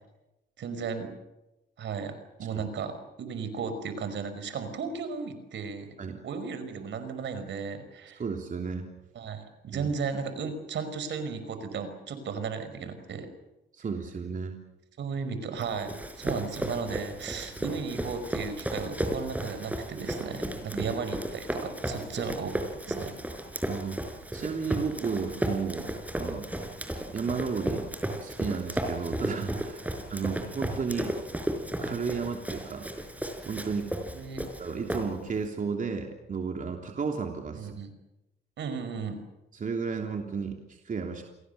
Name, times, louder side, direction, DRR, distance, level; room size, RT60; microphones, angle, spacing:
voice 1, 0.6-1.2 1.8-5.9 6.2-8.2 9.1-13.3 15.0-22.6 22.9-23.1 29.8-29.9 34.1-34.5 37.5-37.9 38.6-39.2, right 5 dB, 65° right, 10 dB, 5.2 m, -35 dB
voice 2, 8.2-8.9 9.7-9.9 13.7-14.6 17.6-17.7 20.7-20.8 22.9-23.1 23.7-24.0 24.3-26.5 27.1-27.9 28.2-31.1 31.8-32.9 33.4-33.9 34.6-37.7 39.5-41.2, right 5 dB, 40° right, 3 dB, 3.3 m, -33 dB
Run, 15.6-35.4, right 1 dB, 5° right, 5.0 m, -34 dB
29.5 x 22.0 x 6.9 m, 0.95 s
cardioid pair, 90°, 20 cm